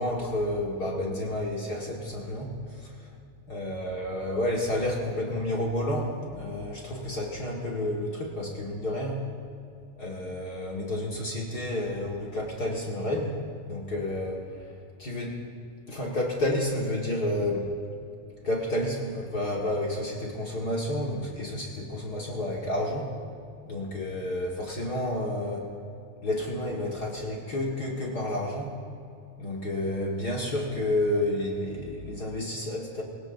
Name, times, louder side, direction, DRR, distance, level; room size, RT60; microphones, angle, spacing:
voice 1, 0.0-3.1 3.5-9.3 10.0-14.7 15.0-15.4 15.9-17.7 18.4-23.1 23.6-25.7 26.2-28.7 29.4-33.0, left 1 dB, 40° left, -2 dB, 1.7 m, -30 dB
23.5 x 17.0 x 2.6 m, 2.6 s
omnidirectional pair, 3.7 m